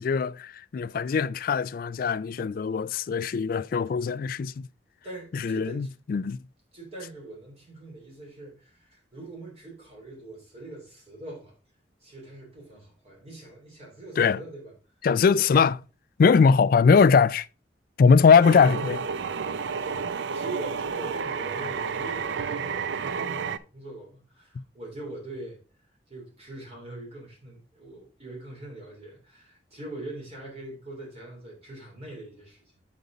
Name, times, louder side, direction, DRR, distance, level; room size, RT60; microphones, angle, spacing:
voice 1, 0.0-4.6 5.3-6.4 14.2-14.4 15.0-15.8 16.2-17.5 18.0-19.0, left 5 dB, 50° left, 0.3 m, -21 dB
voice 2, 5.0-5.9 6.7-11.5 12.0-14.7 18.3-18.4 19.8-25.6 26.1-32.9, right 2 dB, 35° right, 3.3 m, -42 dB
sound 1, 18.4-23.6, right 5 dB, 75° right, 0.5 m, -31 dB
8.2 x 5.3 x 3.9 m
head